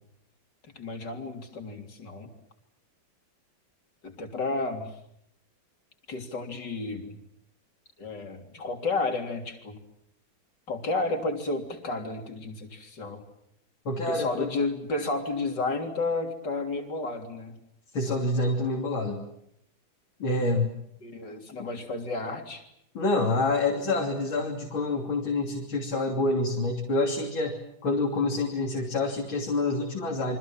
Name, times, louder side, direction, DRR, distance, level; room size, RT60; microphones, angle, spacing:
voice 1, 0.8-2.3 4.0-4.9 6.1-7.2 8.0-9.8 10.7-13.2 14.1-17.6 21.0-22.6, left 3 dB, 60° left, 5 dB, 4.1 m, -32 dB
voice 2, 13.9-14.5 17.9-19.2 20.2-20.8 21.6-21.7 22.9-27.6 27.8-30.4, left 2 dB, 90° left, 0 dB, 4.0 m, -27 dB
29.0 x 25.0 x 7.4 m, 0.75 s
omnidirectional pair, 2.1 m